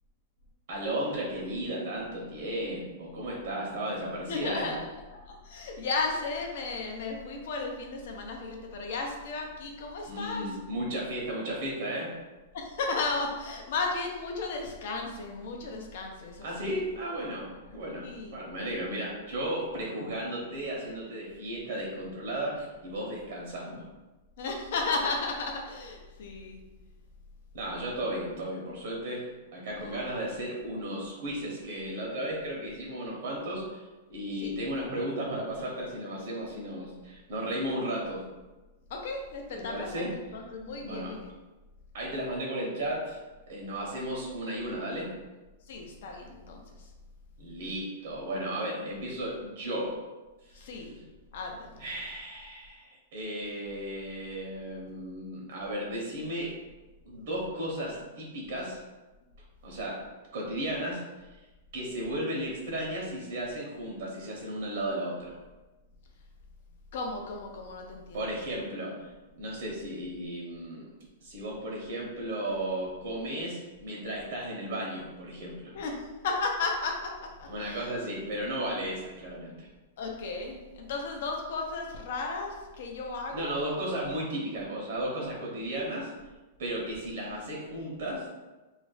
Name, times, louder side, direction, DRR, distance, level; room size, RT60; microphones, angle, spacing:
voice 1, 0.7-4.7 10.0-12.1 16.4-23.8 27.5-33.8 34.1-38.2 39.5-40.4 40.8-41.1 41.9-43.2 43.5-45.1 47.4-50.0 50.4-50.9 51.8-56.5 57.0-58.8 59.6-60.0 60.3-61.0 61.7-65.3 68.1-69.1 69.4-70.9 71.2-75.7 77.4-79.7 83.3-86.1 86.6-88.3, right 1 dB, 60° right, -2 dB, 0.8 m, -34 dB
voice 2, 4.3-4.8 5.2-10.4 12.5-16.5 18.0-18.4 24.4-26.6 29.8-30.0 34.4-34.5 38.9-40.0 40.3-41.2 45.7-46.6 50.6-51.0 51.3-51.7 66.9-68.2 75.7-75.9 76.2-77.1 77.4-77.9 80.0-83.5, left 3 dB, 55° left, 1 dB, 0.6 m, -34 dB
2.4 x 2.1 x 3.9 m, 1.1 s
supercardioid pair, 165°, 0 cm